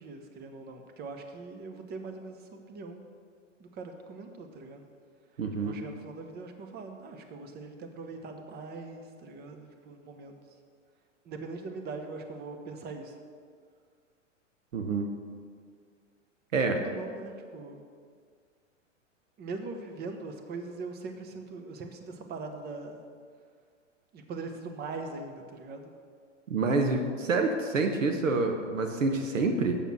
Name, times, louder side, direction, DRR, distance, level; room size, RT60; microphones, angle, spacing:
voice 1, 0.0-3.1 3.6-4.9 5.6-10.4 11.2-13.2 16.7-17.8 19.4-23.0 24.1-25.9, right 3 dB, 25° right, 5 dB, 1.0 m, -41 dB
voice 2, 5.4-5.7 14.7-15.1 16.5-16.8 26.5-29.8, right 3 dB, 80° right, 4 dB, 1.0 m, -27 dB
7.3 x 6.9 x 6.0 m, 2.1 s
hypercardioid pair, 105°, 38 cm